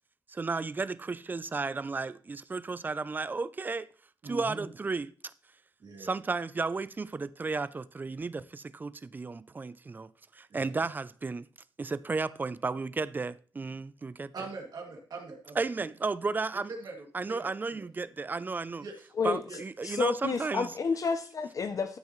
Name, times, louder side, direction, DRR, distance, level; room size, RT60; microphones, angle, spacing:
voice 1, 0.3-3.9 4.2-5.3 6.0-11.5 11.8-14.3 15.6-16.7 17.1-18.8 19.2-20.7, right 4 dB, 25° right, 0.3 m, -33 dB
voice 2, 4.2-4.6 5.8-6.1 10.5-10.7 14.3-15.7 16.7-17.8 18.8-19.1 19.5-19.6, right 3 dB, 60° right, 2.3 m, -42 dB
voice 3, 19.8-22.0, left 5 dB, 45° left, 0.6 m, -30 dB
13.0 x 5.9 x 3.1 m
wide cardioid pair, 155°, 8 cm